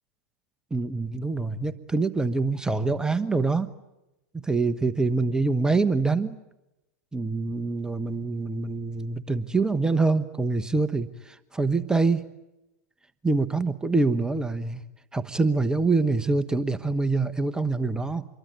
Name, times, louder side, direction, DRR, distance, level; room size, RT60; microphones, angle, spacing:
voice 1, 0.7-3.7 4.3-6.4 7.1-12.3 13.2-14.8 15.1-18.3, right 3 dB, 10° right, 13 dB, 1.2 m, -25 dB
27.0 x 23.0 x 9.1 m, 0.94 s
hypercardioid pair, 100°, 8 cm